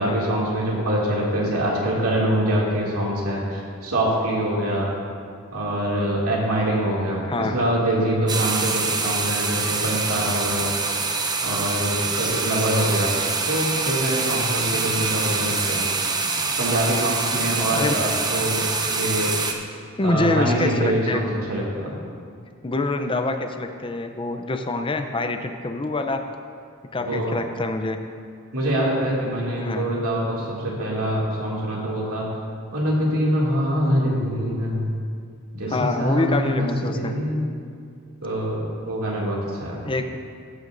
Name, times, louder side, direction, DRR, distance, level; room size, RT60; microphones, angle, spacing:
voice 1, 0.0-5.0 5.5-10.7 11.4-13.2 13.4-15.9 16.6-18.6 18.9-19.3 20.0-22.0 27.0-27.3 28.5-32.3 32.7-34.9 35.5-36.7 36.9-37.5 38.2-39.8, right 1 dB, 85° right, -4 dB, 2.4 m, -24 dB
sound 1, 8.3-19.5, right 4 dB, 20° right, 0.6 m, -25 dB
voice 2, 20.0-21.3 22.6-26.2 26.9-28.0 29.6-29.9 35.7-37.1 39.8-40.0, left 2 dB, 25° left, 6 dB, 0.5 m, -25 dB
14.0 x 9.5 x 2.6 m, 2.2 s
head